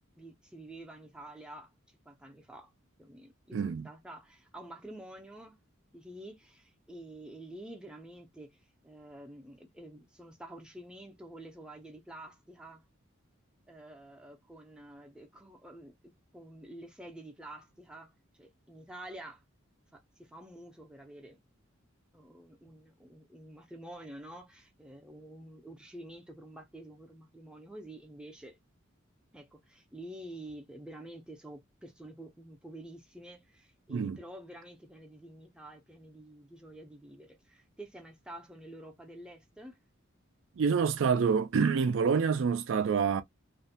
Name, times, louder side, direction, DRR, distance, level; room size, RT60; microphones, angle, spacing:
voice 1, 0.2-2.7 3.0-5.6 5.9-8.6 8.8-12.8 13.7-15.9 16.3-19.4 19.9-21.4 22.1-28.6 29.3-39.8, right 1 dB, 5° right, 0.5 m, -49 dB
voice 2, 3.5-3.9 33.9-34.2 40.6-43.2, right 6 dB, 65° right, 0.4 m, -27 dB
2.5 x 2.1 x 2.6 m
head